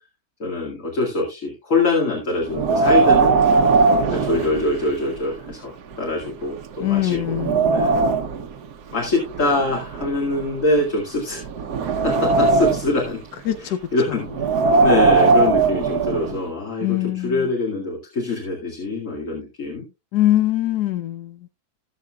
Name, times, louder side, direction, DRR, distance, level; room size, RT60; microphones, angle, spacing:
voice 1, 0.4-3.4 4.1-7.4 7.7-7.9 8.9-11.4 12.0-13.2 13.6-14.5 14.8-19.8, left 2 dB, 55° left, 2.7 m, -24 dB
Wind, 2.5-5.1 5.5-5.6 6.3-6.4 6.8-8.5 9.3-10.8 11.4-13.0 14.3-16.4, right 4 dB, 85° right, 1.4 m, -19 dB
voice 2, 6.8-8.0 13.5-13.8 16.8-17.3 20.1-21.3, left 14 dB, 90° left, 1.3 m, -22 dB
19.0 x 6.5 x 2.3 m
omnidirectional pair, 1.7 m